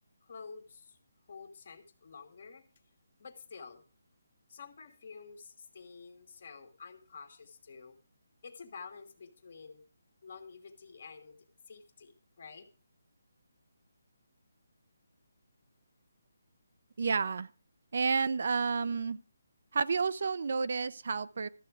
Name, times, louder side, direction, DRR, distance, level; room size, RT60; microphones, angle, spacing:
voice 1, 0.2-1.0 1.3-2.7 3.2-3.8 4.5-8.0 8.4-9.8 10.2-12.7, left 5 dB, 45° left, 8 dB, 1.6 m, -50 dB
voice 2, 17.0-17.5 17.9-19.2 19.7-21.5, right 5 dB, 55° right, 15 dB, 0.5 m, -30 dB
13.0 x 7.9 x 4.8 m, 0.35 s
hypercardioid pair, 165°, 0 cm